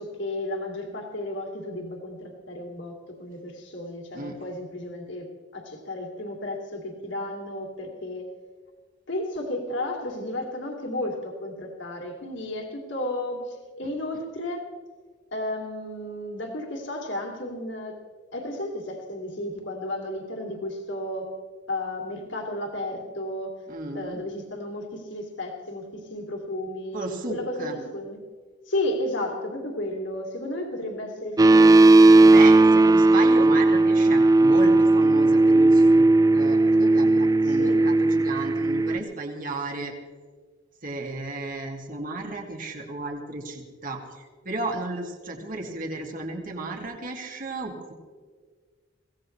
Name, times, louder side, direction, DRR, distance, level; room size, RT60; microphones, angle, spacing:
voice 1, 0.0-5.3 5.5-8.3 9.1-14.7 15.3-18.0 18.3-21.3 21.7-23.7 23.9-28.2 28.6-32.3 37.4-37.8, left 1 dB, 75° left, 1 dB, 2.7 m, -33 dB
voice 2, 23.7-24.2 26.9-27.8 32.2-39.9 40.8-47.9, right 2 dB, 50° right, 1 dB, 2.5 m, -33 dB
sound 1, 31.4-39.0, right 2 dB, 20° right, 0.3 m, -16 dB
23.0 x 17.0 x 3.3 m, 1.5 s
head